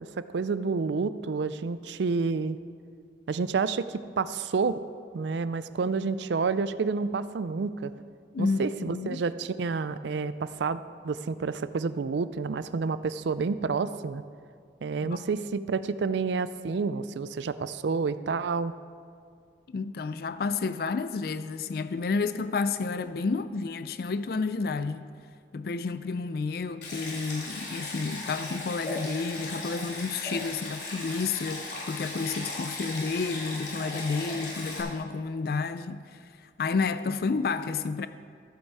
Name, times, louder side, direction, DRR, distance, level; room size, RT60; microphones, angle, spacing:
voice 1, 0.2-2.6 3.3-4.8 5.1-7.9 8.4-14.2 14.8-18.7, right 4 dB, 75° right, 0.4 m, -29 dB
voice 2, 8.3-9.2 15.0-15.3 19.7-25.1 25.5-38.1, left 4 dB, 55° left, 0.4 m, -30 dB
Stream, 26.8-34.8, left 2 dB, 75° left, 3.4 m, -37 dB
14.0 x 8.1 x 4.7 m
head